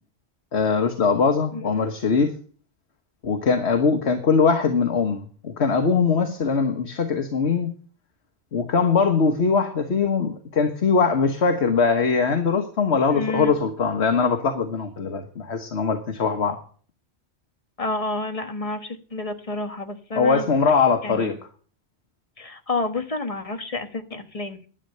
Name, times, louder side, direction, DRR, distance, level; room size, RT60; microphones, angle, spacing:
voice 1, 0.5-2.3 3.2-7.7 8.5-16.6 20.2-21.4, left 5 dB, 80° left, 6 dB, 1.6 m, -21 dB
voice 2, 13.1-13.5 17.8-20.5 21.0-21.3 22.4-24.6, left 2 dB, 35° left, 7 dB, 1.4 m, -29 dB
11.5 x 8.8 x 6.7 m, 0.42 s
omnidirectional pair, 1.1 m